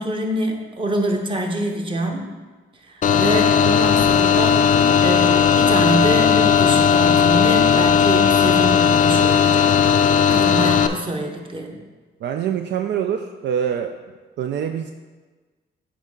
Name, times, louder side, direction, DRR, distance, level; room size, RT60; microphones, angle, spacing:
voice 1, 0.0-2.3 2.9-9.8 10.3-11.8, right 1 dB, 25° right, 3 dB, 1.0 m, -25 dB
sound 1, 3.0-10.9, left 7 dB, 40° left, 0.5 m, -16 dB
voice 2, 12.2-14.0 14.4-14.9, right 8 dB, 60° right, 6 dB, 0.4 m, -24 dB
8.2 x 4.5 x 3.7 m, 1.3 s
cardioid pair, 90°, 20 cm